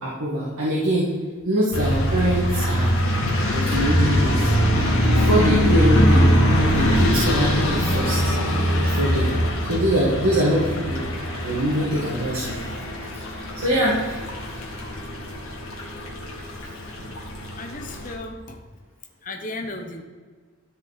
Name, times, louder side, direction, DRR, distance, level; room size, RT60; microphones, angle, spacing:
voice 1, 0.0-1.1 1.5-3.0 3.5-4.5 5.1-6.3 6.7-8.3 8.8-9.3 9.7-11.0 11.4-12.6 13.6-14.2, right 1 dB, 85° right, -7 dB, 1.9 m, -23 dB
sound 1, 1.7-18.1, equal, 80° left, 2.0 m, -22 dB
voice 2, 17.6-18.6 19.2-20.0, left 2 dB, 35° left, 3 dB, 0.9 m, -34 dB
13.0 x 4.6 x 4.1 m, 1.5 s
head